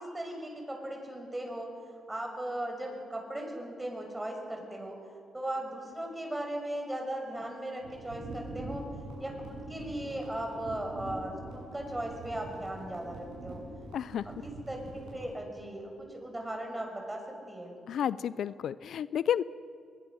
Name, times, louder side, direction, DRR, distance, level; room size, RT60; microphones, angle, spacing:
voice 1, 0.0-1.7 2.1-5.0 5.3-8.8 9.2-13.6 14.2-17.2 17.5-17.8, right 1 dB, 15° right, 2 dB, 6.5 m, -37 dB
sound 1, 7.8-15.3, right 2 dB, 85° right, 7.6 m, -44 dB
voice 2, 13.9-14.3 17.9-19.4, left 9 dB, 70° left, 17 dB, 0.4 m, -31 dB
21.5 x 21.0 x 6.5 m, 2.3 s
supercardioid pair, 60°, 0 cm